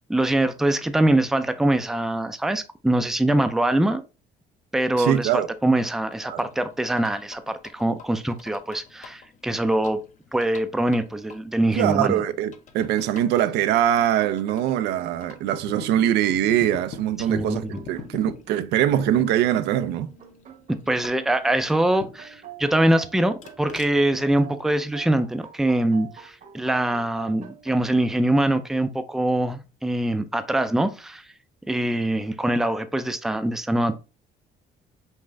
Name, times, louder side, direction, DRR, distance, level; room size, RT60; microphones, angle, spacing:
voice 1, 0.1-4.0 4.7-10.0 10.3-12.2 17.3-17.8 20.9-31.2 31.7-33.9, right 1 dB, ahead, 0.4 m, -23 dB
voice 2, 5.0-5.5 6.3-6.4 11.7-20.1, right 11 dB, 85° right, 0.5 m, -22 dB
sound 1, 6.1-22.4 22.8-25.0, left 6 dB, 45° left, 0.7 m, -45 dB
sound 2, 13.1-28.0, right 7 dB, 50° right, 0.9 m, -47 dB
5.4 x 2.5 x 3.3 m
cardioid pair, 110°, 17 cm